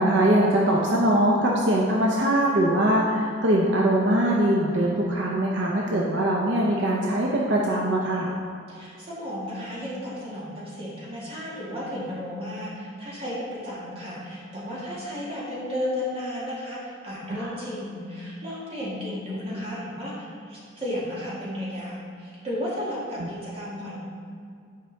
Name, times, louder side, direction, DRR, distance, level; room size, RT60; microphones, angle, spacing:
voice 1, 0.0-8.3 17.4-17.5 23.2-23.3, right 1 dB, 65° right, -3 dB, 0.7 m, -22 dB
voice 2, 8.7-24.0, left 1 dB, 30° right, -8 dB, 1.9 m, -33 dB
9.6 x 5.0 x 3.3 m, 2.3 s
head